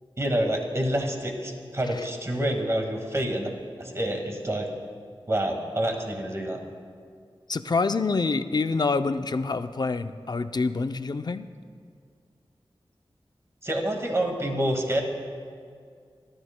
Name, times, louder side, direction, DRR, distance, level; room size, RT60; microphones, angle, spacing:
voice 1, 0.2-3.5 3.8-4.7 5.3-6.6 13.6-15.0, right 1 dB, 30° right, 2 dB, 1.8 m, -27 dB
voice 2, 7.5-11.5, left 4 dB, 45° left, 10 dB, 0.5 m, -26 dB
26.5 x 13.0 x 2.2 m, 2.2 s
wide cardioid pair, 85°, 10 cm